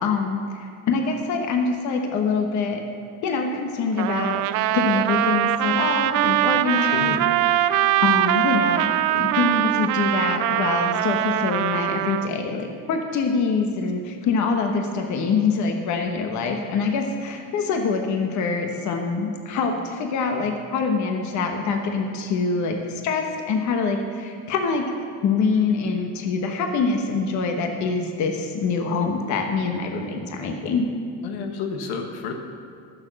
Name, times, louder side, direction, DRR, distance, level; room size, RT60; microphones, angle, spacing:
voice 1, 0.0-2.8 3.2-4.4 4.7-7.2 8.0-24.9 25.2-30.9, left 4 dB, 50° left, 4 dB, 1.1 m, -25 dB
Trumpet, 4.0-12.3, right 13 dB, 55° right, 0.5 m, -22 dB
voice 2, 6.8-7.2 31.2-32.3, left 5 dB, 85° left, 4 dB, 1.5 m, -31 dB
14.0 x 6.8 x 6.2 m, 2.4 s
cardioid pair, 155°, 37 cm